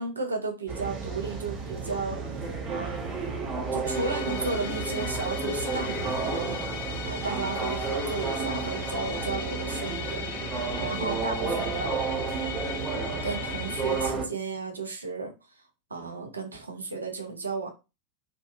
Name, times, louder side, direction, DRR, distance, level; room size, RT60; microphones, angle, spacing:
voice 1, 0.0-2.4 2.7-3.2 3.7-6.6 7.0-10.2 10.8-12.0 13.2-15.6 15.9-17.7, right 3 dB, 75° right, 3 dB, 0.5 m, -34 dB
sound 1, 0.7-14.2, right 4 dB, 35° right, 0.8 m, -32 dB
Musical instrument, 3.8-14.1, left 8 dB, 50° left, 0.3 m, -38 dB
2.4 x 2.2 x 2.4 m, 0.28 s
figure-of-eight pair, 90°, 0 cm